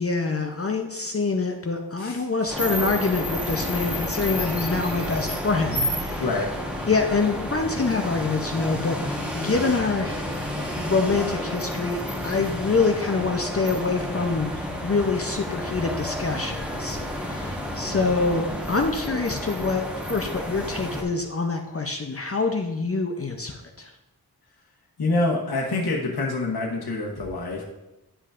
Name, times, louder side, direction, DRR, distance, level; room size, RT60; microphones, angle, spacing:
voice 1, 0.0-6.2 6.9-10.3 10.8-23.9, left 4 dB, 35° left, 3 dB, 0.6 m, -26 dB
sound 1, 2.5-21.0, left 1 dB, 5° right, 1.2 m, -30 dB
voice 2, 6.2-6.5 25.0-27.6, left 2 dB, 75° left, -1 dB, 1.1 m, -26 dB
9.7 x 5.4 x 2.5 m, 0.98 s
wide cardioid pair, 60°, 38 cm